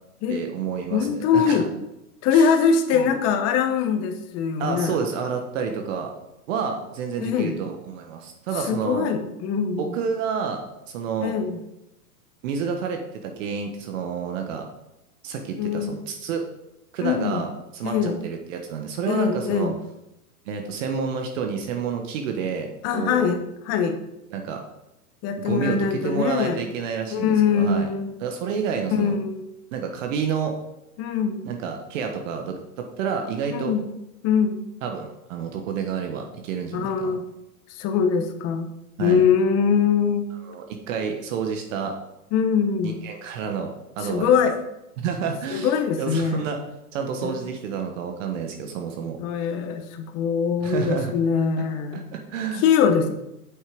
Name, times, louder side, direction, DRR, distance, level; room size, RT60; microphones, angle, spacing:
voice 1, 0.3-1.7 2.3-2.5 2.9-3.1 4.6-6.1 6.5-9.1 9.8-11.3 12.4-14.6 15.2-16.4 16.9-19.7 20.5-23.3 24.3-24.6 25.4-27.9 28.2-29.2 29.7-30.5 31.4-33.7 34.8-37.2 39.0-39.2 40.5-41.9 42.8-44.3 45.0-46.6 46.9-49.2 50.6-51.1 51.6-51.7 51.9-52.6, right 6 dB, 50° right, 4 dB, 1.4 m, -29 dB
voice 2, 0.9-1.6 2.2-5.0 7.2-7.5 8.7-9.9 11.2-11.6 15.6-16.0 17.0-17.4 17.8-18.2 19.1-19.7 22.8-23.4 23.7-23.9 25.2-26.6 27.1-28.1 29.0-29.5 31.0-31.5 33.5-33.8 34.2-34.7 36.7-37.2 37.7-38.7 39.0-40.3 42.3-43.0 44.0-44.6 45.5-46.5 47.2-47.4 49.2-52.1 52.6-53.1, left 6 dB, 35° left, 7 dB, 1.1 m, -22 dB
8.3 x 6.3 x 5.2 m, 0.89 s
hypercardioid pair, 125°, 47 cm